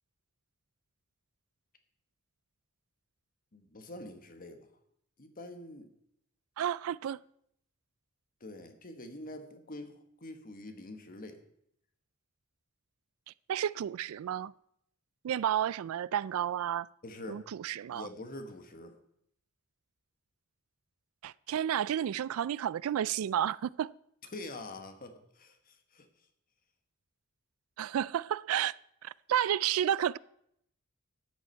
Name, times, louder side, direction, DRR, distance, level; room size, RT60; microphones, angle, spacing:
voice 1, 3.5-4.7 5.2-5.9 8.4-11.4 17.0-17.5 17.9-19.0 24.3-26.1, left 2 dB, 45° left, 1.3 m, -45 dB
voice 2, 6.6-7.2 13.5-14.5 15.2-16.9 17.3-18.1 21.2-23.9 27.8-28.7 29.0-30.2, right 10 dB, 90° right, 0.3 m, -31 dB
13.0 x 9.6 x 4.5 m
head